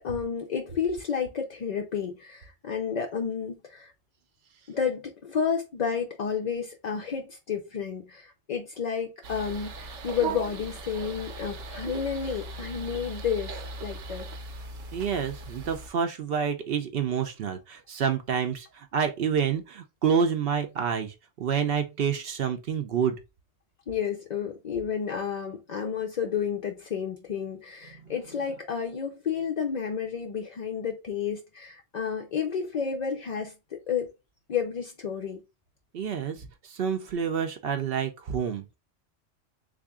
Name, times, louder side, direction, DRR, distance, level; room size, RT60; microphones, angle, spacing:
voice 1, 0.0-3.9 4.7-14.3 23.9-34.1 34.5-35.4, left 7 dB, 60° left, 0.4 m, -31 dB
sound 1, 9.2-15.9, right 3 dB, 75° right, 1.0 m, -38 dB
voice 2, 14.9-23.2 28.0-28.1 35.9-38.8, right 7 dB, 60° right, 0.7 m, -28 dB
3.5 x 2.5 x 3.5 m
omnidirectional pair, 1.3 m